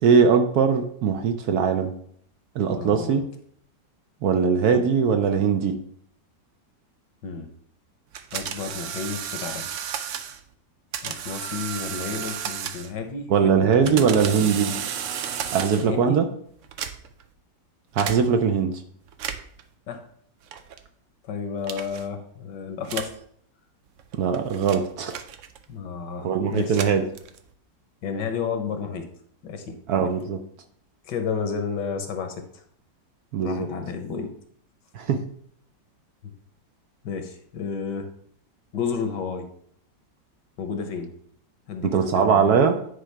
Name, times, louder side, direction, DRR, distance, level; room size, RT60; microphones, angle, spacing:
voice 1, 0.0-1.9 2.6-3.2 4.2-5.8 13.3-14.8 15.5-16.2 17.9-18.8 24.1-25.2 26.2-27.1 29.9-30.4 33.3-33.7 34.9-35.2 41.8-42.8, right 6 dB, 65° right, 6 dB, 1.0 m, -21 dB
voice 2, 2.7-3.2 7.2-7.5 8.3-9.7 11.0-14.1 15.7-16.2 19.9-20.0 21.2-23.1 25.7-26.8 28.0-29.1 29.4-29.8 31.0-32.6 33.4-34.3 36.2-36.3 37.0-38.1 38.7-39.5 40.6-41.1 41.7-42.5, left 6 dB, 70° left, 6 dB, 1.5 m, -31 dB
Polaroid Foley, 8.1-10.4 10.9-13.1 13.6-16.0 16.6-17.2 18.0-18.2 19.1-19.6 20.5-20.8 21.6-22.1 22.8-23.2 24.0-25.7 26.5-27.6, right 8 dB, 90° right, 0.6 m, -33 dB
10.0 x 4.8 x 3.3 m, 0.64 s
omnidirectional pair, 2.0 m